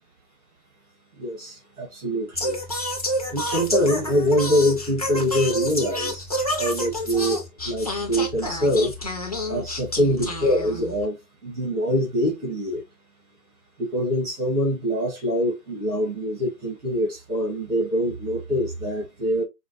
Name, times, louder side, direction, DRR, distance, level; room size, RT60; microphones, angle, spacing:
voice 1, 1.2-2.6 3.3-8.9 9.5-11.2 11.4-12.8 13.8-19.4, equal, 65° right, 1.8 m, -24 dB
Singing, 2.3-11.1, equal, 25° left, 0.4 m, -29 dB
4.8 x 2.1 x 2.9 m
figure-of-eight pair, 130°, 49 cm